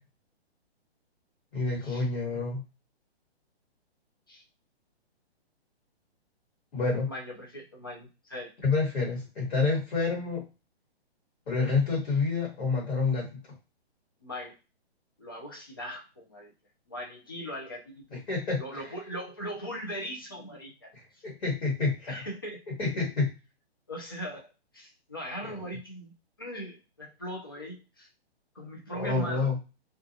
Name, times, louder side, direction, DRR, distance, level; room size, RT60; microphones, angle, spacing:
voice 1, 1.5-2.6 6.7-7.1 8.6-10.4 11.5-13.4 18.1-18.9 20.9-22.1 22.8-23.3 25.4-25.6 28.9-29.6, left 4 dB, 55° left, -3 dB, 1.4 m, -28 dB
voice 2, 7.1-8.5 14.2-14.5 15.2-16.5 16.9-18.2 18.6-20.9 22.1-22.6 23.9-26.1 26.4-28.1 28.5-29.5, equal, 20° left, -2 dB, 0.4 m, -39 dB
2.4 x 2.2 x 2.7 m, 0.30 s
hypercardioid pair, 170°, 33 cm